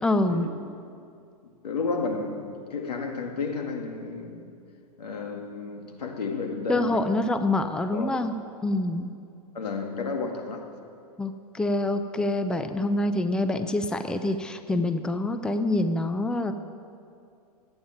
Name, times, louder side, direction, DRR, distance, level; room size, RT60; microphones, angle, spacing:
voice 1, 0.0-0.5 6.7-8.3 8.6-9.1 11.2-16.5, left 2 dB, 5° left, 8 dB, 0.6 m, -26 dB
voice 2, 1.6-4.5 5.0-7.1 7.9-8.3 9.5-10.7, left 4 dB, 85° left, 2 dB, 2.3 m, -32 dB
15.5 x 9.0 x 9.1 m, 2.4 s
hypercardioid pair, 125°, 20 cm